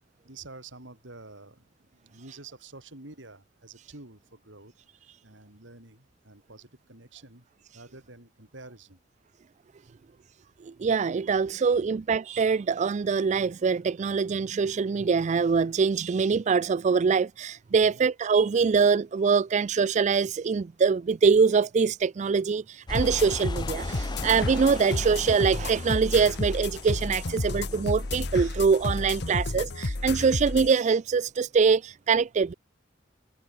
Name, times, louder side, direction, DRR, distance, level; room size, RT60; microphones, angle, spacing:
voice 1, 0.2-1.6 1.9-4.7 5.0-7.4 7.7-9.0 9.8-9.9 11.8-11.9 17.7-18.0, right 3 dB, 75° right, 5.0 m, -48 dB
voice 2, 10.6-32.5, right 5 dB, 40° right, 0.4 m, -24 dB
sound 1, 22.9-30.7, left 2 dB, 60° left, 1.3 m, -31 dB
sound 2, 22.9-29.5, left 3 dB, 25° left, 0.6 m, -40 dB
open air
head